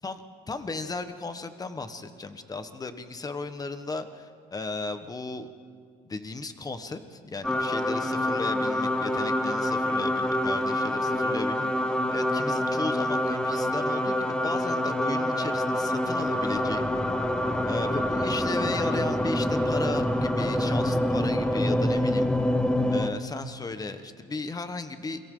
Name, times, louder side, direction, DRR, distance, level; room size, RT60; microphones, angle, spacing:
voice 1, 0.5-5.5 6.1-16.9 17.6-22.3 22.9-25.2, left 3 dB, 20° left, 9 dB, 1.3 m, -35 dB
sound 1, 7.4-23.1, left 1 dB, 5° left, 1.1 m, -26 dB
28.5 x 23.0 x 3.9 m, 2.1 s
cardioid pair, 110°, 17 cm